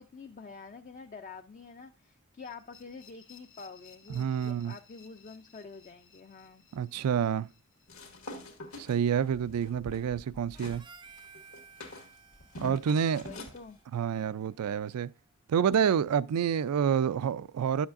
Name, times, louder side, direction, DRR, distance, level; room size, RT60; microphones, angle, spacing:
voice 1, 0.0-6.6 12.9-13.8, left 4 dB, 35° left, 0.4 m, -47 dB
sound 1, 2.4-9.3, left 7 dB, 55° left, 1.6 m, -59 dB
voice 2, 4.1-4.7 6.7-7.5 8.8-10.8 12.6-13.3 13.9-15.1 15.5-17.9, right 8 dB, 85° right, 0.3 m, -28 dB
sound 2, 7.9-10.8 11.2-13.6, left 1 dB, 75° left, 1.8 m, -45 dB
Harmonica, 10.5-15.0, right 5 dB, 20° right, 0.5 m, -56 dB
10.0 x 7.2 x 2.5 m
head